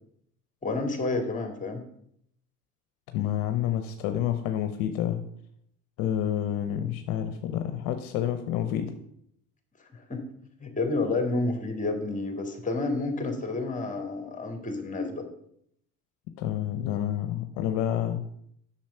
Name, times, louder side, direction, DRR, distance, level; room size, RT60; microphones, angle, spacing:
voice 1, 0.6-1.8 9.9-10.2 10.6-15.3, left 3 dB, 20° left, 5 dB, 2.3 m, -30 dB
voice 2, 3.1-5.2 6.0-8.9 16.4-18.2, left 11 dB, 65° left, 8 dB, 0.9 m, -29 dB
7.3 x 6.6 x 5.6 m, 0.70 s
hypercardioid pair, 80°, 37 cm